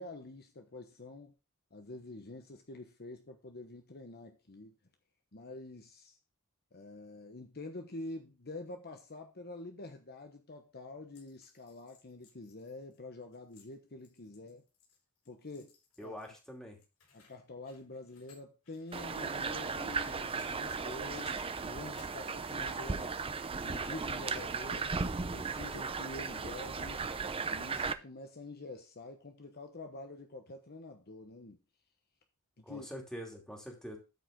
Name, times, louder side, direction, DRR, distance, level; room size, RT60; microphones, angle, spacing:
voice 1, 0.0-1.3 1.7-4.7 5.3-6.2 6.7-14.6 15.3-15.7 16.0-16.2 17.1-23.2 23.6-27.1 27.5-31.6 32.6-32.9, left 2 dB, 45° left, 1.1 m, -47 dB
sound 1, 11.1-16.5 16.8-20.8 21.1-21.5 21.9-23.2, left 5 dB, 85° left, 6.7 m, -62 dB
voice 2, 16.0-16.8 32.7-34.0, equal, 5° left, 2.7 m, -45 dB
sound 2, 18.9-27.9, right 4 dB, 25° right, 0.6 m, -36 dB
13.0 x 5.0 x 3.9 m
head